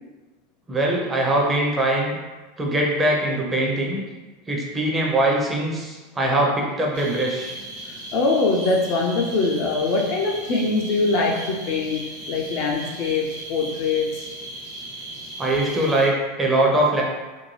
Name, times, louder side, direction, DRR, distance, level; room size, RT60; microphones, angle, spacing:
voice 1, 0.7-2.2 2.6-4.0 4.5-7.5 15.4-17.0, right 1 dB, 20° right, -1 dB, 0.7 m, -22 dB
sound 1, 6.9-16.1, right 1 dB, 70° right, 1.1 m, -37 dB
voice 2, 7.9-14.3, left 3 dB, 55° left, -1 dB, 0.4 m, -23 dB
2.6 x 2.2 x 3.1 m, 1.2 s
hypercardioid pair, 95°, 0 cm